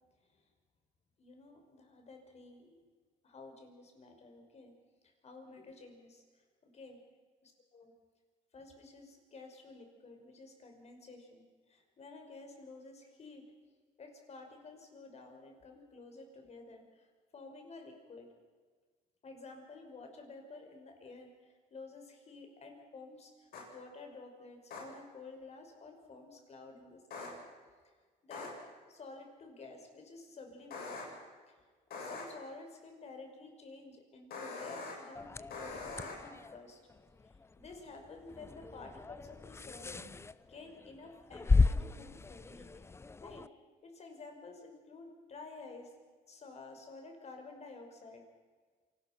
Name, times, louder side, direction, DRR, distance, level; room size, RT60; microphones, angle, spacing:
voice 1, 1.2-2.8 3.2-4.7 5.2-6.2 6.6-7.0 8.5-13.4 14.0-17.1 17.3-18.3 19.2-27.4 28.2-28.6 28.9-31.1 31.5-31.6 31.9-36.8 37.2-40.0 40.5-42.7 43.2-43.5 43.8-45.9 46.3-48.2, left 3 dB, 40° left, 4 dB, 5.5 m, -51 dB
sound 1, 23.5-23.6 24.7-24.8 27.1-27.3 28.3-28.5 30.7-31.0 31.9-32.2 34.3-34.9 35.5-36.1, left 4 dB, 65° left, 7.8 m, -42 dB
sound 2, 35.2-43.5, left 3 dB, 15° left, 0.6 m, -35 dB
27.0 x 20.0 x 6.0 m, 1.5 s
cardioid pair, 110°, 17 cm